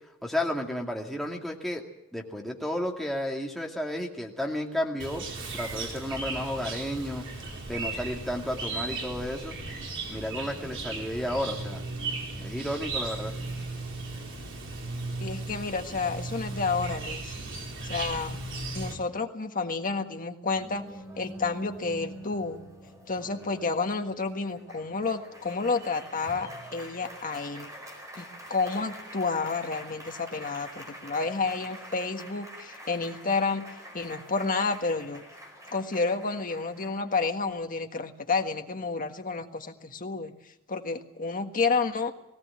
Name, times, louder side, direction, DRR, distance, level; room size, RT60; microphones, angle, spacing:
voice 1, 0.2-1.8 2.1-5.2 5.5-7.3 7.7-9.5 10.1-11.8 12.3-13.3, left 1 dB, ahead, -1 dB, 2.3 m, -32 dB
Chirp tweet, 5.0-18.9, right 3 dB, 60° right, 4.1 m, -36 dB
voice 2, 15.2-17.4 17.8-18.4 18.7-20.9 21.2-22.6 23.1-27.7 28.2-33.7 33.9-35.2 35.7-40.3 40.7-42.1, left 4 dB, 40° left, 5 dB, 1.6 m, -30 dB
Applause, 20.5-37.5, equal, 15° right, 4.9 m, -46 dB
18.5 x 18.0 x 8.6 m, 0.84 s
head